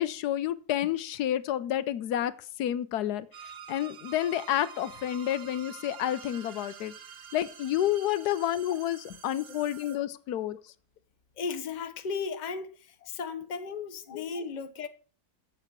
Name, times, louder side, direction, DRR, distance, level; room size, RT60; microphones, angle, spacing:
voice 1, 0.0-2.3 2.6-6.9 7.3-10.6 14.1-14.2, left 12 dB, 85° left, 1.2 m, -30 dB
sound 1, 3.3-10.0, right 7 dB, 65° right, 1.5 m, -47 dB
voice 2, 11.4-12.7 13.1-14.9, left 5 dB, 35° left, 0.9 m, -35 dB
8.0 x 6.7 x 7.3 m
omnidirectional pair, 1.6 m